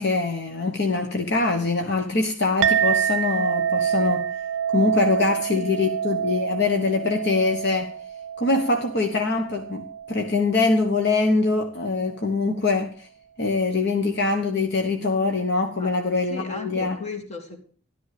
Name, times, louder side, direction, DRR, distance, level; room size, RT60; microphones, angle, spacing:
voice 1, 0.0-4.3 4.7-7.9 8.4-13.1 13.4-17.0, left 3 dB, 60° left, 4 dB, 1.4 m, -23 dB
Chink clink, 2.6-11.3, right 8 dB, 65° right, 0.5 m, -27 dB
voice 2, 5.5-5.9 15.8-15.9 16.3-17.6, left 3 dB, 35° left, 4 dB, 2.5 m, -36 dB
13.5 x 12.0 x 5.1 m, 0.42 s
head